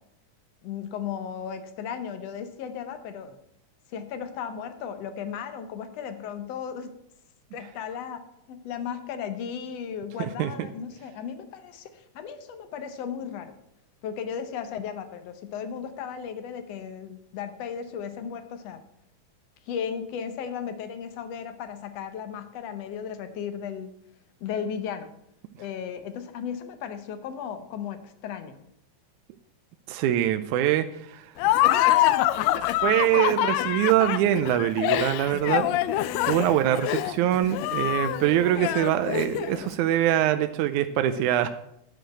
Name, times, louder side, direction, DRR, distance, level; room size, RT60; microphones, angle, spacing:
voice 1, 0.6-3.4 3.9-6.9 7.5-13.5 14.0-18.8 19.7-23.9 24.4-25.1 25.6-28.6, left 7 dB, 65° left, 9 dB, 1.7 m, -35 dB
voice 2, 10.2-10.5 29.9-31.3 32.6-35.7 36.2-41.5, right 12 dB, 80° right, 9 dB, 1.9 m, -24 dB
Laughter, 31.4-39.7, left 14 dB, 90° left, 1.5 m, -25 dB
10.5 x 4.9 x 7.7 m, 0.78 s
omnidirectional pair, 3.6 m